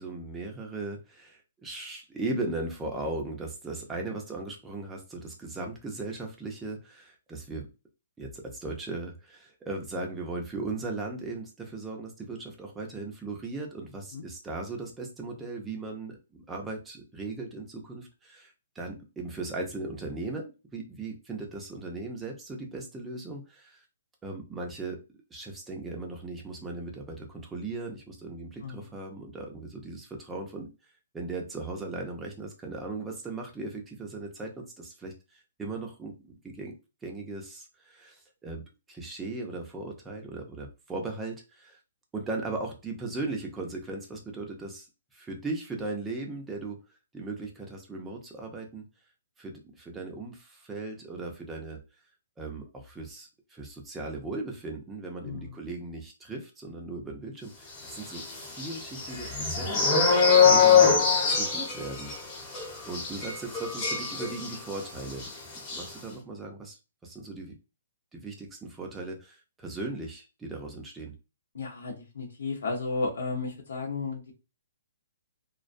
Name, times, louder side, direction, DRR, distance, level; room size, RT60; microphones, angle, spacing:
voice 1, 0.0-7.6 8.2-16.2 16.5-23.8 24.2-25.0 25.3-30.7 31.1-36.1 36.4-36.7 37.0-38.6 38.9-41.8 42.1-44.9 45.1-46.8 47.1-48.9 49.4-51.8 52.4-60.2 60.5-60.9 61.3-62.1 62.9-65.3 65.7-66.8 67.0-67.6 68.1-71.1, right 3 dB, 10° right, 0 dB, 0.5 m, -38 dB
voice 2, 55.2-55.6 60.4-60.8 71.5-74.3, left 3 dB, 80° left, 0 dB, 0.8 m, -34 dB
sound 1, 58.1-64.8 65.1-65.3 65.6-65.8, left 6 dB, 25° left, 0.9 m, -23 dB
2.2 x 2.2 x 2.5 m, 0.29 s
hypercardioid pair, 155°, 0 cm